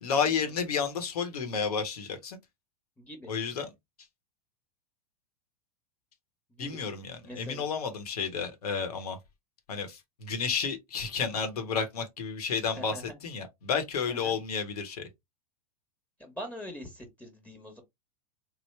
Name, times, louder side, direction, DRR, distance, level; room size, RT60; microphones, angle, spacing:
voice 1, 0.0-2.4 3.3-3.7 6.6-9.2 9.7-15.1, left 6 dB, 80° left, 1.0 m, -31 dB
voice 2, 3.0-3.3 6.5-6.8 7.2-7.7 12.7-13.2 14.1-14.3 16.2-17.8, equal, 5° left, 0.9 m, -43 dB
3.2 x 2.1 x 3.2 m
hypercardioid pair, 110°, 19 cm